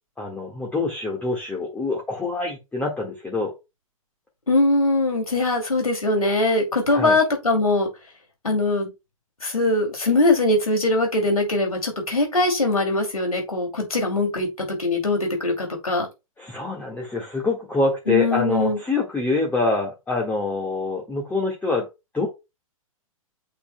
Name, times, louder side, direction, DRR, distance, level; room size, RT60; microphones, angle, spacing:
voice 1, 0.2-3.5 6.9-7.1 16.4-21.9 22.1-22.3, left 3 dB, 10° left, 1.7 m, -25 dB
voice 2, 4.5-7.9 8.4-8.9 9.4-16.1 18.1-18.8, left 2 dB, 85° left, 2.7 m, -21 dB
8.4 x 6.0 x 2.2 m
figure-of-eight pair, 110°, 18 cm